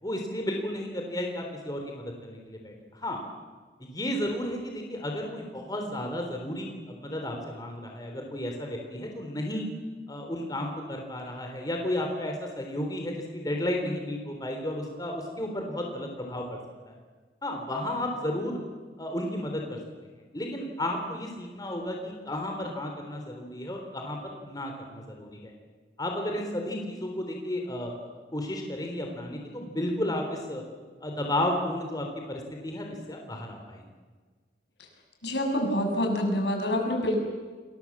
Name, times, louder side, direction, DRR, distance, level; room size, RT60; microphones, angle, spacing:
voice 1, 0.0-3.2 3.8-9.7 10.1-16.4 17.4-18.6 19.0-19.8 20.3-25.5 26.0-30.6 31.0-33.8, left 1 dB, 20° left, 2 dB, 3.7 m, -33 dB
voice 2, 35.2-37.1, left 1 dB, 75° left, 3 dB, 7.0 m, -26 dB
28.5 x 22.5 x 7.4 m, 1.5 s
head